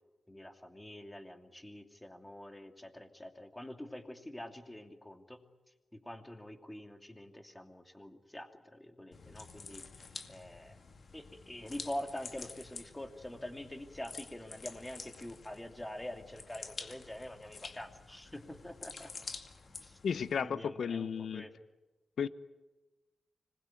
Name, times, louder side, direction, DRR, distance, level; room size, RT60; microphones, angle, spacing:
voice 1, 0.3-5.4 5.9-10.8 11.1-19.1 19.8-20.0 20.4-21.5, left 1 dB, 10° left, 5 dB, 2.7 m, -45 dB
sound 1, 9.1-20.4, left 4 dB, 55° left, 2.3 m, -49 dB
voice 2, 20.0-21.4 22.2-22.3, left 7 dB, 75° left, 14 dB, 0.9 m, -34 dB
25.5 x 21.0 x 9.3 m, 1.1 s
cardioid pair, 90°, 0 cm